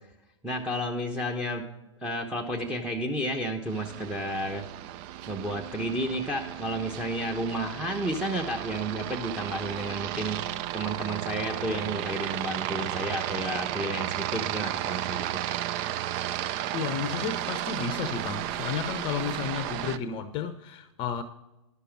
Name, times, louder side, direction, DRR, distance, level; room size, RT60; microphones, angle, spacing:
voice 1, 0.4-1.7 2.0-4.6 5.3-10.4 10.7-15.4, right 1 dB, 5° right, 1.0 m, -31 dB
Aircraft, 3.7-20.0, right 12 dB, 40° right, 0.5 m, -34 dB
voice 2, 16.7-21.2, left 7 dB, 30° left, 0.7 m, -32 dB
11.5 x 6.8 x 6.0 m
figure-of-eight pair, 105°, 16 cm